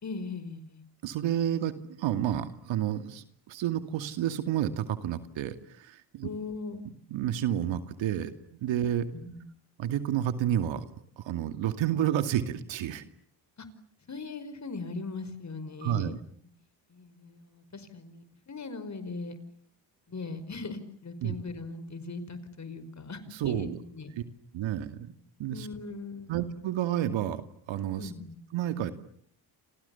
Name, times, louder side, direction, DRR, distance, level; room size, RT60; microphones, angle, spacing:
voice 1, 0.0-0.8 6.2-6.8 9.1-9.4 13.6-13.7 14.1-16.1 16.9-19.4 20.1-24.1 25.5-26.4 28.0-28.4, left 3 dB, 35° left, 13 dB, 5.3 m, -39 dB
voice 2, 1.0-6.3 7.1-8.3 8.6-9.1 9.8-10.9 11.2-13.0 15.8-16.2 21.2-21.4 23.4-23.8 24.5-25.1 25.4-25.7 26.3-27.4 27.7-28.1 28.5-28.9, right 11 dB, 75° right, 9 dB, 2.5 m, -30 dB
29.5 x 28.0 x 7.1 m, 0.64 s
supercardioid pair, 70°, 46 cm